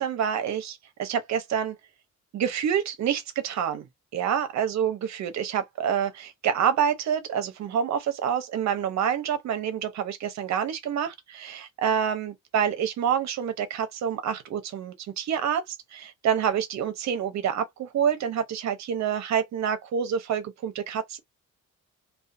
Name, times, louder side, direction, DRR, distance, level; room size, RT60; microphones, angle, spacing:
voice 1, 0.0-1.7 2.3-3.8 4.1-21.2, right 8 dB, 60° right, 0.6 m, -27 dB
2.3 x 2.2 x 2.5 m
cardioid pair, 165°, 32 cm